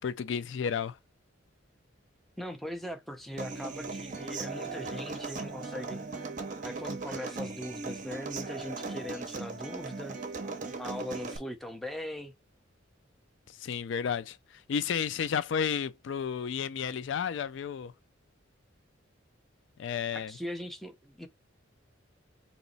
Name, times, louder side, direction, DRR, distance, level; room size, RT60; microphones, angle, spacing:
voice 1, 0.0-1.0 13.6-14.4 14.7-17.9 19.8-20.3, left 7 dB, 65° left, 0.3 m, -32 dB
voice 2, 2.4-6.0 6.6-10.2 10.8-12.3 20.1-21.3, left 1 dB, ahead, 0.7 m, -40 dB
Human voice / Acoustic guitar, 3.4-11.4, right 3 dB, 40° right, 0.7 m, -38 dB
4.0 x 2.9 x 4.0 m
head